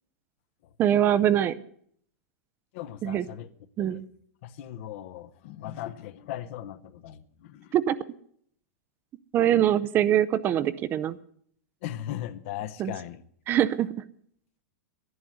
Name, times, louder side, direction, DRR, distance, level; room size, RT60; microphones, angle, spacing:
voice 1, 0.8-1.6 3.0-3.3 3.8-4.0 7.7-8.0 9.3-11.2 12.8-12.9 13.5-13.9, right 11 dB, 25° right, 15 dB, 0.5 m, -23 dB
voice 2, 2.7-3.5 3.8-4.0 4.4-7.7 11.8-13.2, left 12 dB, 50° left, 14 dB, 0.8 m, -38 dB
11.0 x 11.0 x 7.8 m, 0.64 s
supercardioid pair, 155°, 9 cm